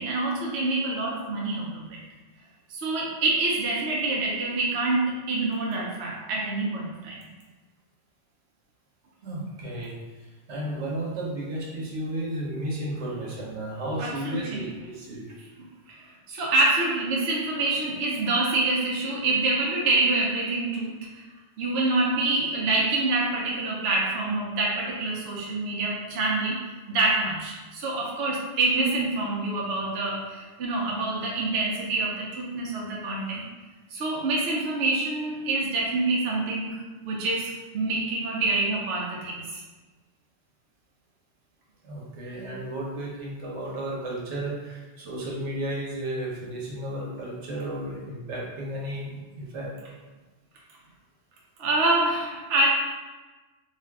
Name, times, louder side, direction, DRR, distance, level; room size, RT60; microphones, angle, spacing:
voice 1, 0.0-2.0 2.7-7.2 14.0-14.7 15.6-16.0 16.3-21.2 21.6-26.6 26.9-33.4 33.9-39.6 51.6-52.7, right 2 dB, 70° right, -3 dB, 0.8 m, -26 dB
voice 2, 9.2-9.9 10.5-15.2 41.8-49.7, right 1 dB, 85° right, -4 dB, 1.1 m, -33 dB
2.6 x 2.4 x 3.3 m, 1.2 s
omnidirectional pair, 1.2 m